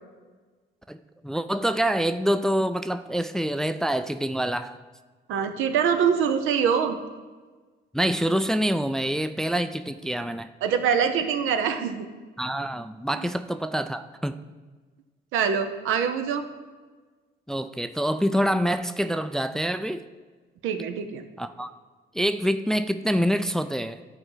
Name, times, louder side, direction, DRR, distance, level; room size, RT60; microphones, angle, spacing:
voice 1, 0.9-4.8 7.9-10.5 12.4-14.4 17.5-20.1 21.4-21.7 22.1-24.0, equal, 5° left, 10 dB, 0.3 m, -26 dB
voice 2, 5.3-7.0 10.6-12.1 13.1-13.3 15.3-16.4 20.6-21.2, right 7 dB, 90° right, 7 dB, 0.7 m, -24 dB
12.5 x 4.4 x 3.9 m, 1.4 s
cardioid pair, 90°, 20 cm